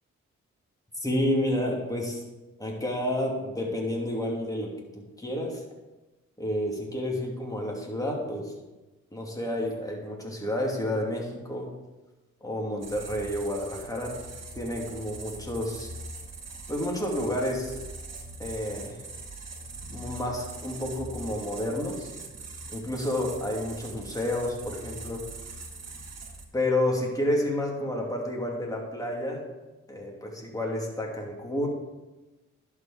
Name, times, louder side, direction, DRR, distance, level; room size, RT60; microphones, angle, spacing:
voice 1, 1.0-2.2 2.6-5.6 6.4-8.5 9.1-11.7 12.4-14.1 14.6-15.9 16.7-17.8 18.4-19.0 19.9-22.1 22.7-25.2 26.5-29.4 29.9-31.7, left 1 dB, 10° left, -2 dB, 2.6 m, -30 dB
sound 1, 12.8-26.4, right 3 dB, 55° right, 1.4 m, -42 dB
11.0 x 4.9 x 4.9 m, 1.1 s
supercardioid pair, 40°, 31 cm